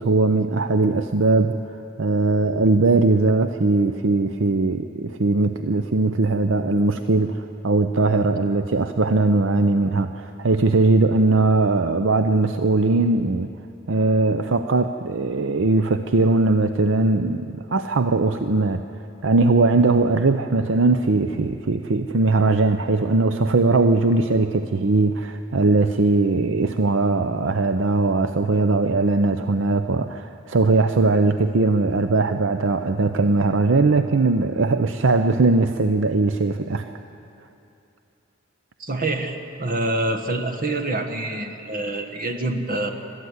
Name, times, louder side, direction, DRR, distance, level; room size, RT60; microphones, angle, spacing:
voice 1, 0.0-1.6 2.0-13.5 13.9-18.8 19.2-36.9, right 3 dB, 65° right, 9 dB, 0.6 m, -20 dB
voice 2, 38.8-42.9, right 2 dB, 40° right, 6 dB, 1.5 m, -26 dB
22.0 x 13.5 x 9.4 m, 2.7 s
head